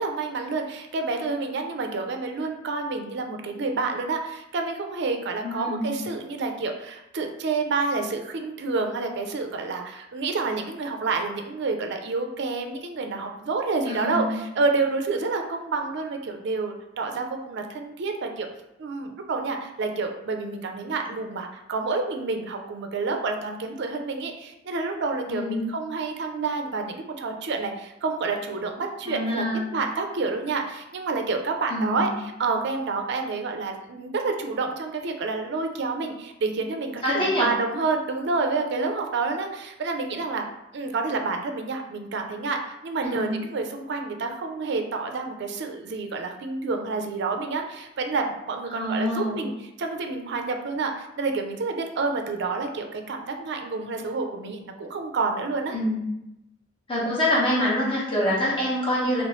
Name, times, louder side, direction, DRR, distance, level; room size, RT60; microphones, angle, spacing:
voice 1, 0.0-18.5 18.8-29.4 29.7-32.1 32.4-40.4 40.7-42.6 42.8-49.5 49.8-55.7, right 3 dB, 60° right, 4 dB, 0.4 m, -29 dB
voice 2, 5.4-5.9 13.9-14.3 21.1-21.2 25.3-25.7 29.0-29.7 31.7-32.1 37.0-37.5 43.0-43.3 48.7-49.4 55.7-56.1 56.9-59.2, left 1 dB, 30° left, -6 dB, 1.3 m, -26 dB
3.0 x 3.0 x 3.0 m, 0.89 s
head